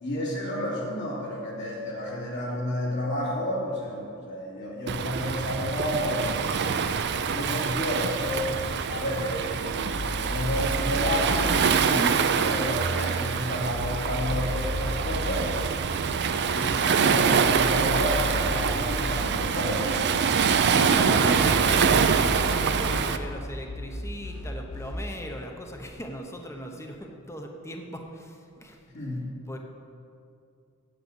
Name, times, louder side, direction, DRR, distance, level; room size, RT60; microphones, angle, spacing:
voice 1, 0.0-6.7 7.3-8.5 8.9-11.6 12.4-15.5 16.3-20.3 28.9-29.3, left 1 dB, 55° left, -4 dB, 2.7 m, -31 dB
Waves surf, 4.9-23.2, right 6 dB, 55° right, 0.5 m, -25 dB
sound 1, 9.7-11.6 13.5-15.4 17.3-19.2 21.1-24.9, left 1 dB, 70° left, 2.2 m, -34 dB
voice 2, 11.8-12.2 20.7-28.8 29.5-29.6, equal, 15° left, 2 dB, 0.9 m, -38 dB
7.9 x 7.9 x 8.1 m, 2.5 s
head